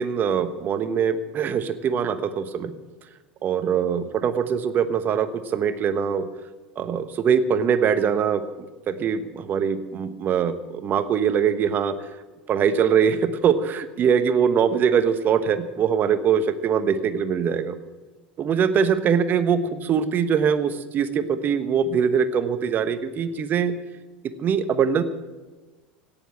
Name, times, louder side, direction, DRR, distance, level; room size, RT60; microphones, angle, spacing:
voice 1, 0.0-2.7 3.4-6.3 6.8-12.0 12.5-17.8 18.4-23.8 24.4-25.0, right 7 dB, 40° right, 11 dB, 1.2 m, -22 dB
17.5 x 7.2 x 8.7 m, 1.2 s
figure-of-eight pair, 80°, 5 cm